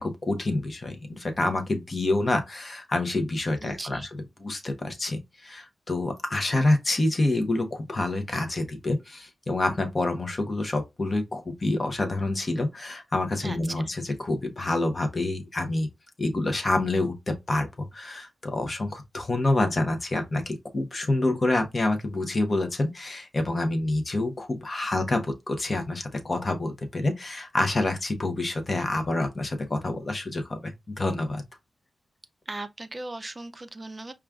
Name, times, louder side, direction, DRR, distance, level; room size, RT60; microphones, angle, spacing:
voice 1, 0.0-4.1 4.4-15.9 16.2-31.4, left 2 dB, 30° left, 0.8 m, -27 dB
voice 2, 3.6-4.1 13.4-13.7 32.5-34.1, right 2 dB, 20° right, 0.4 m, -37 dB
4.9 x 2.3 x 2.3 m
wide cardioid pair, 130°, 0 cm